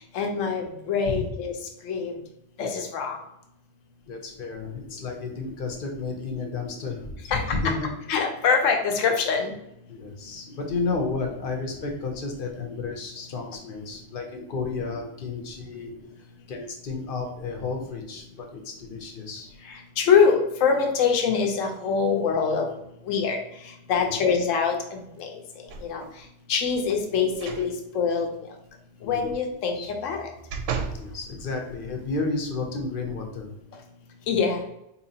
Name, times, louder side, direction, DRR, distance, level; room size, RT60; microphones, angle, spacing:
voice 1, 0.1-1.5 1.8-2.1 2.6-3.2 7.3-7.4 8.1-9.5 20.0-22.7 23.1-23.4 23.9-24.7 25.2-25.3 25.8-26.0 26.5-28.3 29.0-29.8 30.0-30.3 34.3-34.6, left 6 dB, 75° left, 2 dB, 1.0 m, -23 dB
voice 2, 4.1-7.9 9.9-15.9 16.5-19.5 24.0-24.3 29.0-29.3 29.7-29.9 30.9-33.5, left 3 dB, 50° left, 2 dB, 0.8 m, -32 dB
sound 1, 25.7-26.2 27.3-27.7 28.1-28.2 29.8-31.1 31.6-31.7, right 5 dB, 70° right, 0.8 m, -34 dB
4.1 x 2.8 x 2.7 m, 0.82 s
omnidirectional pair, 1.4 m